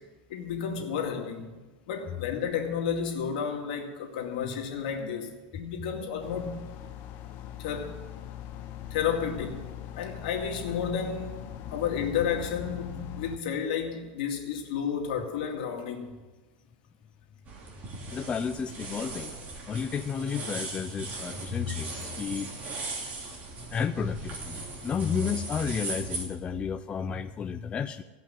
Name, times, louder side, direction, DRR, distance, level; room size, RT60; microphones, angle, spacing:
voice 1, 0.3-1.5 1.9-6.7 7.6-8.0 8.9-9.7 9.9-11.4 11.7-16.2 23.1-23.2, left 7 dB, 75° left, 2.3 m, -32 dB
sound 1, 6.2-13.4, left 10 dB, 45° left, 0.9 m, -41 dB
Digging a clay pot out of sand, 17.5-26.2, right 3 dB, 35° right, 2.8 m, -38 dB
voice 2, 18.1-19.3 19.7-22.5 23.7-28.0, left 6 dB, 20° left, 0.4 m, -32 dB
16.5 x 5.6 x 8.8 m
supercardioid pair, 135°, 5 cm